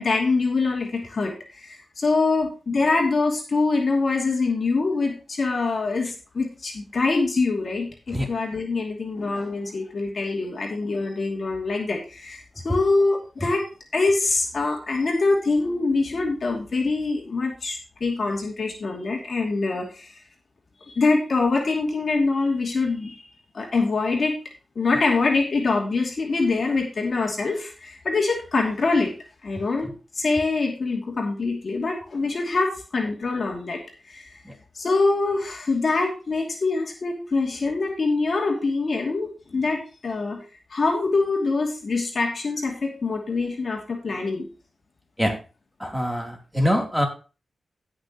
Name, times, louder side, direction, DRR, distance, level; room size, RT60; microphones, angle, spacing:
voice 1, 0.0-13.6 13.9-20.2 21.0-23.3 23.5-24.3 24.7-29.1 29.4-29.9 30.1-33.8 34.1-34.4 34.7-40.4 40.7-44.5, left 3 dB, 60° left, 0 dB, 2.7 m, -24 dB
voice 2, 45.8-47.0, equal, ahead, 1 dB, 3.4 m, -23 dB
17.0 x 6.3 x 3.1 m, 0.34 s
cardioid pair, 55°, 0 cm